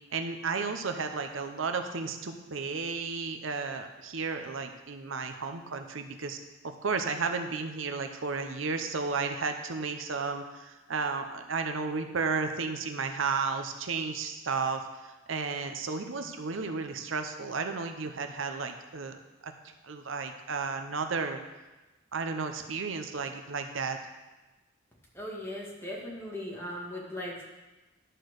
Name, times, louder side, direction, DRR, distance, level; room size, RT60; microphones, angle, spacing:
voice 1, 0.1-6.4 6.6-19.5 19.8-21.4 22.1-24.0, right 4 dB, 75° right, 6 dB, 0.7 m, -33 dB
voice 2, 25.1-27.4, left 1 dB, 10° left, -4 dB, 2.0 m, -38 dB
11.5 x 4.5 x 6.4 m, 1.1 s
head